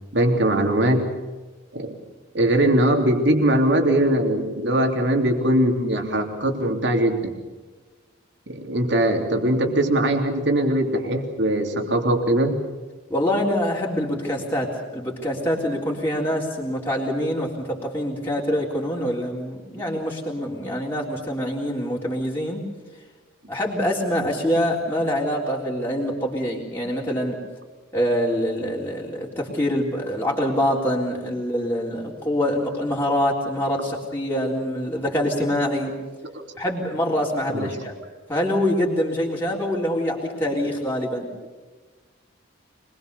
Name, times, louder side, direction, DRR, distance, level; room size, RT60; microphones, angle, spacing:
voice 1, 0.1-1.1 1.7-2.0 2.3-7.3 8.5-12.6 36.3-36.4 37.5-37.7, right 1 dB, 55° right, 4 dB, 3.2 m, -21 dB
voice 2, 13.1-22.7 23.5-27.4 27.9-35.9 36.6-37.9 38.3-41.3, equal, 10° left, -4 dB, 3.6 m, -25 dB
25.0 x 21.5 x 6.9 m, 1.3 s
head